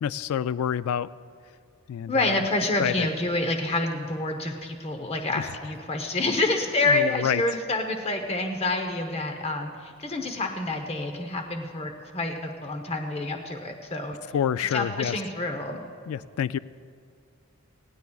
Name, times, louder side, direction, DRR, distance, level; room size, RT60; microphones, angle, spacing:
voice 1, 0.0-1.1 1.9-2.4 2.8-3.1 5.4-5.5 6.9-7.4 14.3-15.2 16.1-16.6, left 9 dB, 80° left, 17 dB, 0.3 m, -27 dB
voice 2, 2.1-14.2 14.6-15.8, left 2 dB, 30° left, 5 dB, 0.8 m, -28 dB
19.5 x 16.5 x 2.3 m, 2.3 s
head